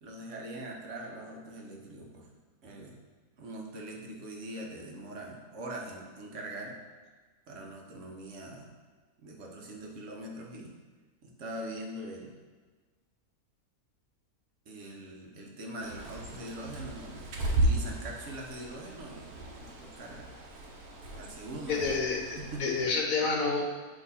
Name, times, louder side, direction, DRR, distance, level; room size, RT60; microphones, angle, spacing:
voice 1, 0.0-2.3 2.6-3.0 3.4-6.8 7.5-8.7 9.2-10.7 11.2-12.3 14.7-20.3 21.2-21.9 22.4-22.8, right 1 dB, 55° right, -1 dB, 1.2 m, -42 dB
Bird, 15.8-22.9, right 1 dB, 80° right, 1.4 m, -35 dB
voice 2, 21.7-23.6, left 4 dB, 65° left, 1 dB, 1.3 m, -29 dB
8.4 x 3.0 x 4.2 m, 1.4 s
omnidirectional pair, 1.6 m